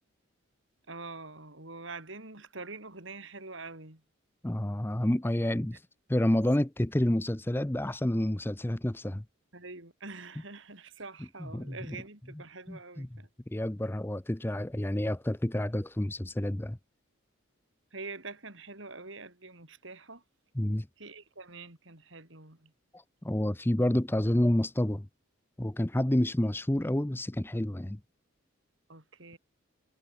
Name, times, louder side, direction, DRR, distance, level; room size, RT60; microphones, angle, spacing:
voice 1, 0.9-4.0 9.5-13.3 17.9-20.2 21.0-22.7 28.9-29.4, right 3 dB, 60° right, 3.9 m, -45 dB
voice 2, 4.4-5.8 6.1-9.2 11.4-12.0 12.7-13.1 13.5-16.8 20.5-20.9 22.9-25.1 25.6-28.0, left 1 dB, 10° left, 0.6 m, -29 dB
head